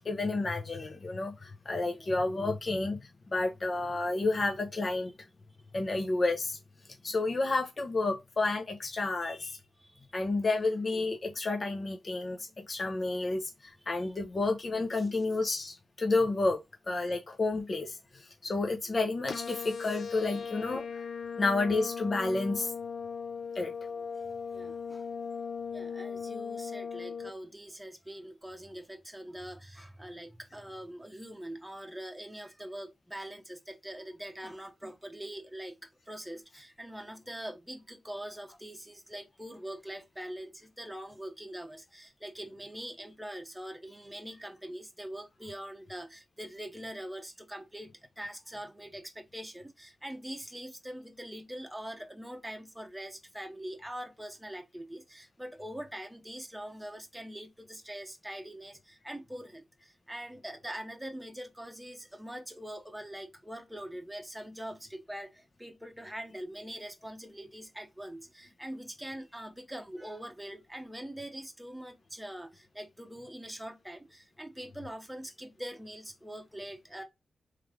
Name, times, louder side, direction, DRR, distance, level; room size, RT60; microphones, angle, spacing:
voice 1, 0.0-3.0 3.3-5.1 5.7-6.6 7.0-9.6 10.1-16.6 16.9-20.8 21.4-22.7 23.5-23.7, left 3 dB, 50° left, 0.8 m, -30 dB
voice 2, 9.8-10.3 13.9-14.1 15.0-15.2 20.3-20.7 24.2-25.1 25.7-77.0, right 1 dB, 5° right, 0.9 m, -43 dB
sound 1, 19.3-27.3, left 6 dB, 70° left, 0.4 m, -38 dB
3.3 x 3.2 x 3.5 m
cardioid pair, 55°, 0 cm